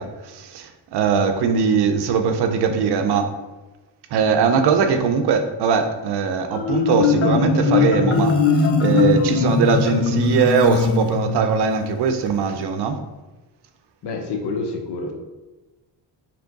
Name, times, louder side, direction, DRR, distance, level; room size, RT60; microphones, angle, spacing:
voice 1, 0.0-3.3 4.1-13.0, right 6 dB, 65° right, 7 dB, 0.6 m, -21 dB
Marimba xylophone, 6.5-11.6, left 4 dB, 35° left, 0.5 m, -20 dB
voice 2, 14.0-15.1, left 3 dB, 65° left, 2 dB, 0.9 m, -28 dB
3.4 x 3.0 x 3.9 m, 1.1 s
cardioid pair, 95°, 43 cm